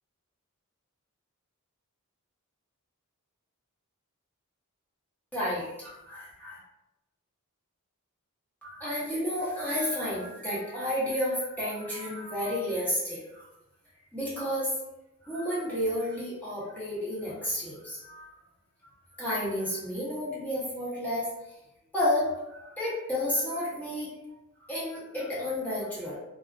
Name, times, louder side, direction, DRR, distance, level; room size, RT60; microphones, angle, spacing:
voice 1, 5.3-6.6 8.6-13.5 14.1-14.7 15.2-18.3 19.1-21.3 21.9-24.1 24.7-26.2, left 1 dB, 10° left, -9 dB, 0.7 m, -31 dB
2.4 x 2.3 x 2.3 m, 0.96 s
head